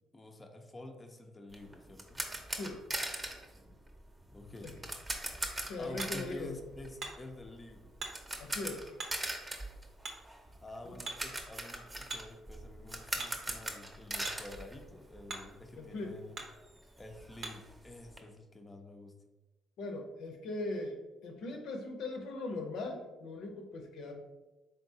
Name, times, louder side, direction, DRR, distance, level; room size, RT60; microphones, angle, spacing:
voice 1, 0.0-2.2 4.3-4.7 5.8-7.9 10.6-16.3 17.0-19.2, left 2 dB, 25° left, 3 dB, 0.5 m, -49 dB
sound 1, 1.5-15.5 15.7-15.9 16.3-16.4 16.6-18.2, right 1 dB, 20° right, 0.7 m, -41 dB
Hammer, 5.1-17.8, right 3 dB, 65° right, 0.8 m, -49 dB
voice 2, 5.6-6.5 8.4-8.9 10.8-10.9 15.8-16.1 19.8-24.1, left 2 dB, 80° left, 2 dB, 0.7 m, -40 dB
3.9 x 3.6 x 2.7 m, 1.1 s
supercardioid pair, 70°, 0 cm